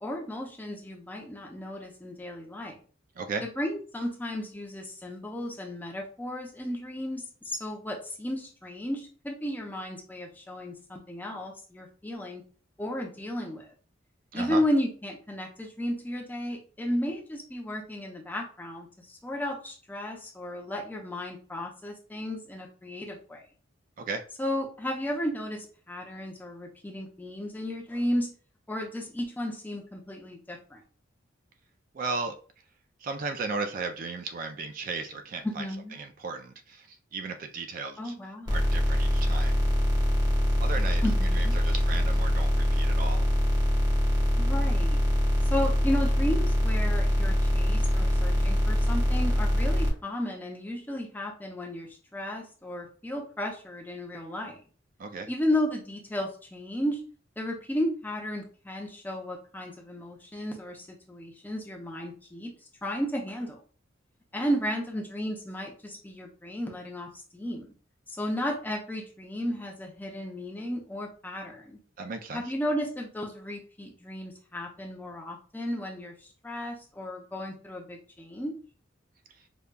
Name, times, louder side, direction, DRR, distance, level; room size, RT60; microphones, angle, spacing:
voice 1, 0.0-2.8 3.4-12.4 12.8-13.7 14.3-23.4 24.4-28.3 28.7-30.8 35.4-36.0 38.0-38.6 41.0-41.6 44.4-45.0 45.4-54.6 55.3-57.0 57.4-62.5 62.8-63.6 64.3-67.7 68.1-71.8 72.3-78.6, left 1 dB, 10° left, 0 dB, 0.6 m, -34 dB
voice 2, 31.9-32.3 33.0-35.7 36.0-38.1 38.5-39.7 40.6-41.0 41.3-43.3 55.0-55.3 72.0-72.5 79.4-79.5, right 4 dB, 45° right, 6 dB, 0.3 m, -35 dB
sound 1, 38.5-49.9, equal, 20° right, 0.9 m, -24 dB
5.1 x 2.2 x 2.2 m, 0.40 s
head